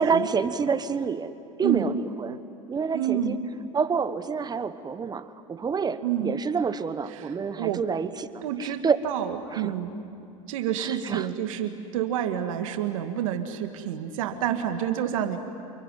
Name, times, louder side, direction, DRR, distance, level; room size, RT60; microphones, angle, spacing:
voice 1, 0.0-1.3 1.6-3.4 3.7-9.0 9.5-9.7 10.8-11.3, right 5 dB, 25° right, 12 dB, 1.3 m, -28 dB
voice 2, 2.9-3.4 6.0-6.3 7.1-7.8 8.4-10.0 10.5-15.4, right 10 dB, 75° right, 6 dB, 2.1 m, -29 dB
28.0 x 22.5 x 9.4 m, 2.6 s
hypercardioid pair, 90°, 17 cm